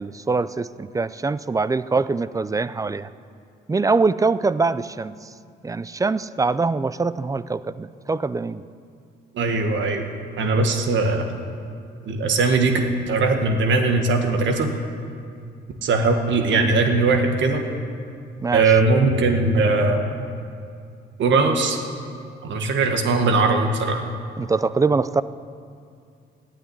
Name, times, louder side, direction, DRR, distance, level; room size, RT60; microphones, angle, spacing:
voice 1, 0.0-3.1 3.7-5.2 5.6-8.6 18.4-18.7 24.4-25.2, right 4 dB, 15° right, 16 dB, 0.4 m, -23 dB
voice 2, 9.3-10.1 10.4-11.3 12.1-12.8 13.1-14.7 15.8-17.6 18.5-20.0 21.2-21.8 22.4-24.0, right 3 dB, 70° right, 5 dB, 1.7 m, -20 dB
12.5 x 9.0 x 9.7 m, 2.4 s
cardioid pair, 90°, 20 cm